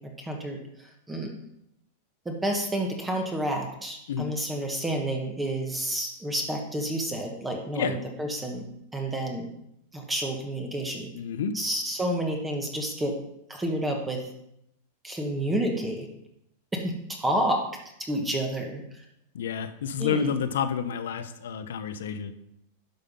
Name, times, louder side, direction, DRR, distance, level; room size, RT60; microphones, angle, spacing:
voice 1, 0.2-1.3 2.2-8.7 8.9-9.5 9.9-11.1 11.5-13.1 13.5-14.3 15.0-16.1 16.7-16.8 17.2-17.6 18.1-19.0 20.0-20.3, right 1 dB, 10° right, 2 dB, 1.3 m, -30 dB
voice 2, 11.1-11.6 19.3-22.3, left 6 dB, 85° left, 11 dB, 0.9 m, -29 dB
10.5 x 5.7 x 5.5 m, 0.79 s
supercardioid pair, 155°, 0 cm